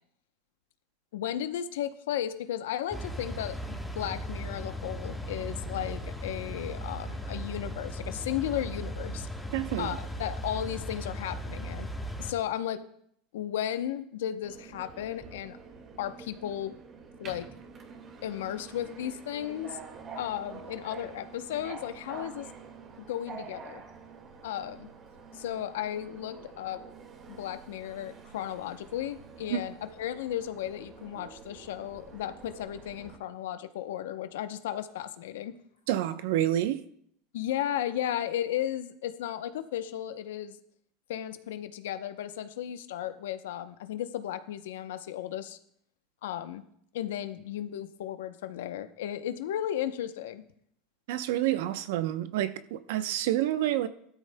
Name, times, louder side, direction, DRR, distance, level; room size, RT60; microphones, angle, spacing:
voice 1, 1.1-9.3 9.8-11.9 12.2-12.8 13.3-15.6 16.0-16.7 17.2-17.5 18.2-19.8 20.1-22.5 23.1-23.8 24.4-24.9 25.3-26.8 27.3-35.6 37.3-40.6 41.1-45.6 46.2-46.6 46.9-50.4, left 11 dB, 85° left, 0.7 m, -35 dB
sound 1, 2.9-12.3, equal, ahead, 1.2 m, -37 dB
voice 2, 9.5-10.0 29.5-29.6 35.9-36.8 51.1-53.9, right 13 dB, 75° right, 0.7 m, -28 dB
Subway metro underground, 14.4-33.2, right 5 dB, 40° right, 1.8 m, -47 dB
16.0 x 13.0 x 2.2 m
supercardioid pair, 100°, 0 cm